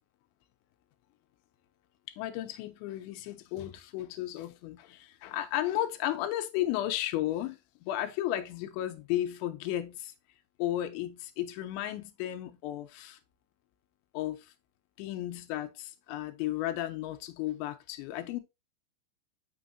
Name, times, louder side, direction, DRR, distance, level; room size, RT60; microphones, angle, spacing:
voice 1, 2.1-10.1 10.6-13.2 14.1-14.5 15.0-18.4, left 13 dB, 85° left, 2.7 m, -34 dB
6.9 x 6.0 x 2.6 m
omnidirectional pair, 5.5 m